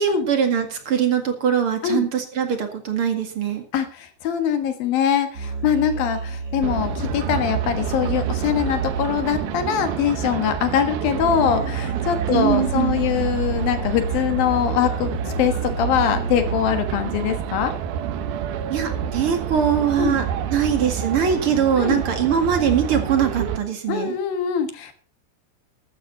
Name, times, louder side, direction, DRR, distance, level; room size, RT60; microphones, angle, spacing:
voice 1, 0.0-3.6 12.3-13.0 18.7-24.1, right 8 dB, 45° right, 6 dB, 2.3 m, -22 dB
voice 2, 3.7-15.1 15.4-17.7 20.0-20.2 21.8-22.0 23.9-24.9, left 8 dB, 70° left, 8 dB, 3.2 m, -23 dB
sound 1, 5.3-10.3 11.1-17.1, right 4 dB, 25° right, 4.6 m, -31 dB
sound 2, 6.6-23.6, right 9 dB, 75° right, 2.9 m, -28 dB
14.0 x 13.0 x 4.0 m, 0.37 s
omnidirectional pair, 4.4 m